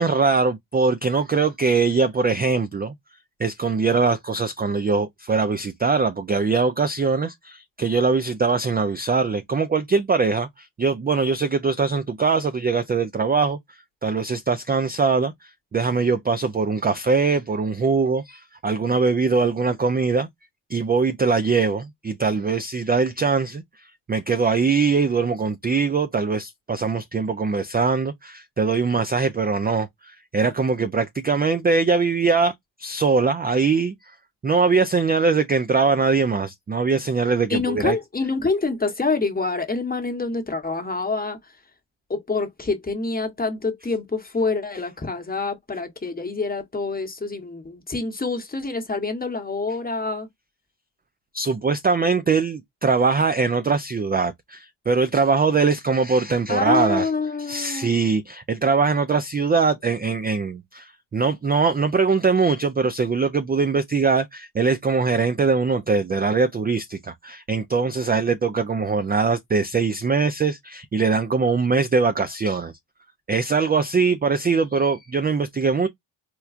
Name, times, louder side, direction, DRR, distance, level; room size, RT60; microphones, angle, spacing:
voice 1, 0.0-2.9 3.4-13.6 14.0-20.3 20.7-23.6 24.1-32.5 32.8-33.9 34.4-38.0 51.3-57.1 57.5-72.7 73.3-75.9, right 4 dB, 20° right, 0.3 m, -22 dB
voice 2, 37.5-41.5 42.1-50.3 56.5-58.0, left 3 dB, 20° left, 1.0 m, -26 dB
4.4 x 2.3 x 2.4 m
cardioid pair, 80°, 46 cm